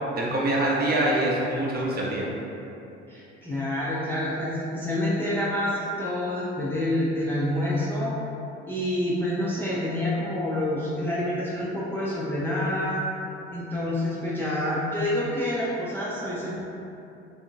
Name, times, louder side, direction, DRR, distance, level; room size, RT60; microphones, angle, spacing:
voice 1, 0.2-2.2, right 1 dB, 30° right, -4 dB, 0.7 m, -24 dB
voice 2, 3.1-8.1 8.7-13.0 13.5-16.6, left 1 dB, 5° left, -8 dB, 0.5 m, -27 dB
3.5 x 3.5 x 2.6 m, 2.8 s
figure-of-eight pair, 60°, 34 cm